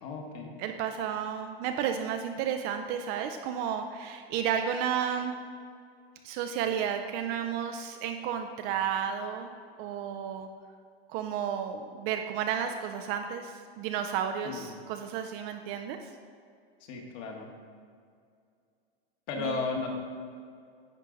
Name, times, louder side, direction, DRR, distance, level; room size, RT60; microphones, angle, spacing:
voice 1, 0.0-0.5 14.4-14.7 16.8-17.5 19.3-19.9, left 4 dB, 45° left, 1 dB, 1.4 m, -34 dB
voice 2, 0.6-5.3 6.2-9.5 9.8-10.5 11.1-16.0 19.4-19.6, right 8 dB, 35° right, 6 dB, 0.4 m, -32 dB
10.5 x 4.6 x 3.9 m, 2.2 s
hypercardioid pair, 125°, 31 cm